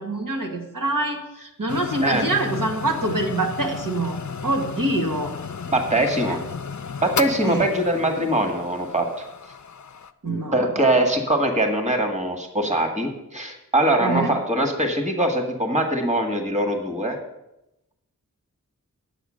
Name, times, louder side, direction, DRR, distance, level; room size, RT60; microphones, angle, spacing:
voice 1, 0.0-4.2 4.4-5.3 6.3-6.4 7.4-7.6 10.2-10.7 14.0-14.3, right 2 dB, 70° right, 2 dB, 1.8 m, -25 dB
sound 1, 1.7-10.1, left 6 dB, 55° left, 0.6 m, -33 dB
voice 2, 5.7-6.4 7.0-9.3 10.5-17.2, right 1 dB, 20° right, 4 dB, 1.8 m, -22 dB
10.0 x 8.2 x 6.4 m, 0.89 s
wide cardioid pair, 60°, 34 cm